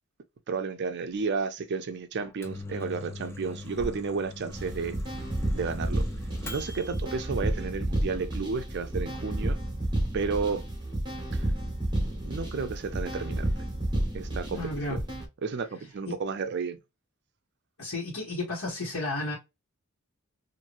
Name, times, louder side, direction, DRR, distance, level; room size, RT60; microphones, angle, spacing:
voice 1, 0.5-5.0 5.5-6.0 6.5-9.6 10.1-10.6 11.9-13.5 14.1-15.0 15.4-16.8, right 4 dB, 50° right, 0.4 m, -32 dB
Microwave oven, 2.2-7.0, left 2 dB, 10° left, 0.6 m, -41 dB
sound 1, 4.5-15.2, right 1 dB, 20° right, 1.1 m, -31 dB
voice 2, 14.5-15.0 17.8-19.3, left 2 dB, 75° left, 1.4 m, -32 dB
3.1 x 2.6 x 2.5 m
head